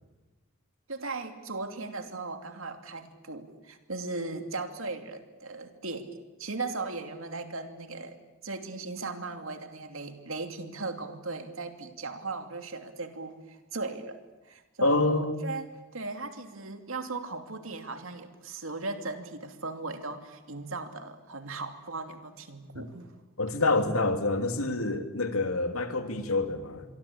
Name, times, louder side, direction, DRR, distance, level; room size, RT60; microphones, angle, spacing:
voice 1, 0.9-8.1 8.4-14.2 14.4-15.7 15.9-23.1, right 3 dB, 70° right, 2.8 m, -37 dB
voice 2, 14.8-15.4 23.4-26.9, left 2 dB, 90° left, 2.7 m, -27 dB
26.5 x 23.0 x 8.7 m
head